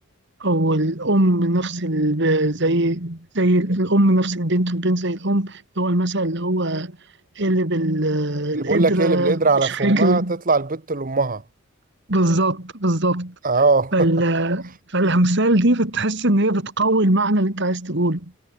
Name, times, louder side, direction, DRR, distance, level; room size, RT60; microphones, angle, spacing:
voice 1, 0.4-6.9 7.4-10.3 12.1-13.3 13.9-18.2, right 1 dB, 55° right, 3.0 m, -20 dB
voice 2, 8.5-11.4 13.4-14.1, right 3 dB, 40° right, 1.1 m, -21 dB
head